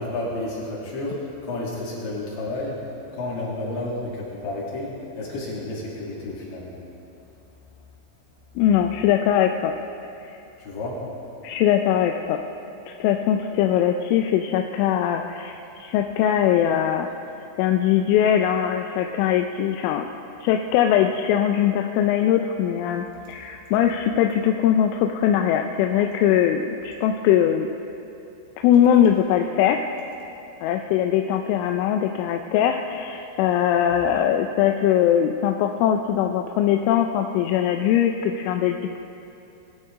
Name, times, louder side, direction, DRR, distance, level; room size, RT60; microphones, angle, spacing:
voice 1, 0.0-6.7 10.6-11.0, left 2 dB, 65° left, -6 dB, 5.1 m, -31 dB
voice 2, 8.6-9.7 10.2-10.4 11.4-12.4 12.9-17.1 17.6-20.1 20.4-27.7 28.6-29.9 30.6-39.0, left 10 dB, 85° left, 4 dB, 2.9 m, -21 dB
21.5 x 13.0 x 3.7 m, 2.9 s
omnidirectional pair, 5.7 m